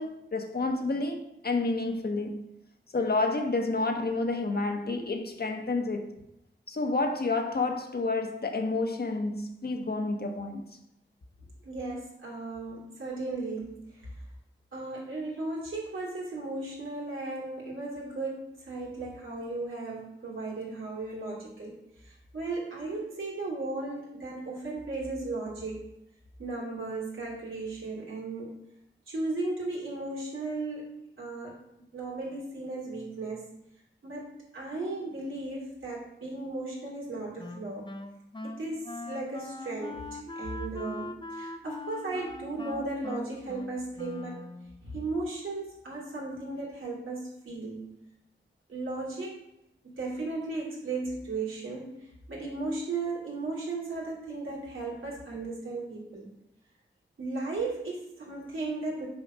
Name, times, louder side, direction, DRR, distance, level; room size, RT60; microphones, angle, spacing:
voice 1, 0.0-2.5 2.9-6.2 6.7-10.6, left 3 dB, 50° left, 1.2 m, -29 dB
voice 2, 11.6-13.8 14.7-25.8 26.4-28.6 29.1-31.6 31.9-33.4 34.0-37.9 38.4-44.5 44.8-47.8 48.7-49.4 49.8-51.9 52.3-56.3 57.2-59.1, right 2 dB, 80° right, 2.9 m, -36 dB
Wind instrument woodwind instrument, 37.4-44.8, left 2 dB, 25° left, 0.6 m, -41 dB
6.5 x 5.1 x 5.1 m
cardioid pair, 60°, 20 cm